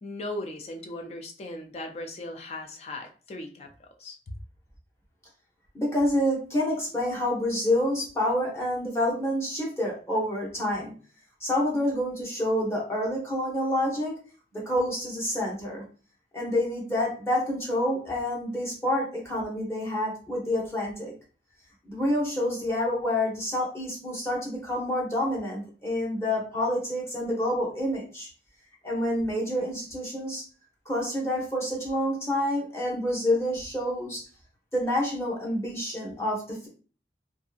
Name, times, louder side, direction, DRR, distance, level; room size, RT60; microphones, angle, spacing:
voice 1, 0.0-4.3, left 1 dB, 35° left, 3 dB, 0.3 m, -38 dB
voice 2, 5.7-10.9 11.4-14.2 14.5-15.8 16.3-21.1 21.8-28.3 28.8-30.4 30.9-34.2 34.7-36.7, left 1 dB, 15° left, -4 dB, 0.9 m, -28 dB
2.6 x 2.4 x 2.4 m, 0.38 s
head